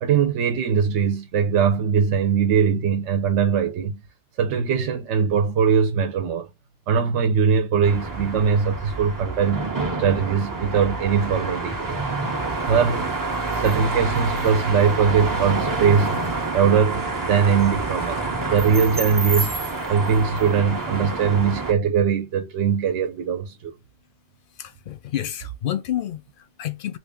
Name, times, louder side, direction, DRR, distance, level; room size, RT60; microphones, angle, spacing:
voice 1, 0.0-4.0 4.4-6.5 6.9-9.7 10.0-12.0 12.6-13.1 13.5-16.3 16.5-19.6 19.9-23.7, right 6 dB, 80° right, 0.9 m, -21 dB
sound 1, 7.8-21.7, right 3 dB, 30° right, 0.4 m, -28 dB
voice 2, 24.5-27.0, left 11 dB, 60° left, 0.6 m, -30 dB
2.9 x 2.5 x 3.5 m
omnidirectional pair, 1.2 m